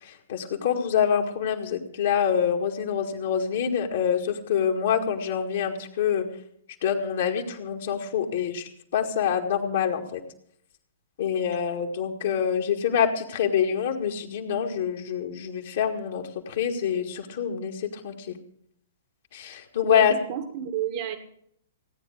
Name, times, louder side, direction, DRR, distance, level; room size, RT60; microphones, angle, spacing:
voice 1, 0.0-6.3 6.8-10.2 11.2-18.4 19.3-20.1, left 8 dB, 55° left, 1 dB, 2.0 m, -26 dB
voice 2, 19.8-21.2, right 9 dB, 50° right, 6 dB, 1.6 m, -31 dB
17.0 x 9.3 x 6.5 m, 0.68 s
figure-of-eight pair, 115°, 0 cm